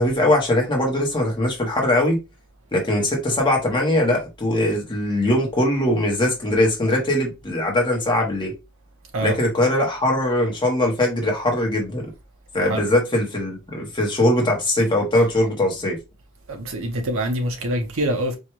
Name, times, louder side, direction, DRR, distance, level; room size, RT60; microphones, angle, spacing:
voice 1, 0.0-2.2 2.7-8.5 9.2-12.0 12.5-16.0, left 1 dB, 20° left, 0.9 m, -21 dB
voice 2, 16.5-18.4, right 1 dB, 65° right, 0.9 m, -25 dB
4.5 x 2.2 x 3.0 m
head